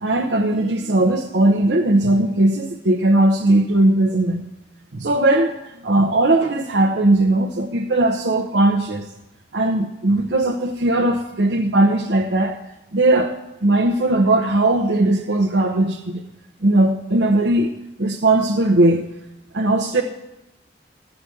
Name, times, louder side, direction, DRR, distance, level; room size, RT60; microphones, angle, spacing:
voice 1, 0.0-4.5 4.9-5.5 5.8-9.1 9.5-12.6 12.9-13.4 13.6-16.2 16.6-17.7 18.0-19.0 19.5-20.0, right 2 dB, 70° right, 2 dB, 0.8 m, -18 dB
13.5 x 5.0 x 8.6 m, 0.98 s
head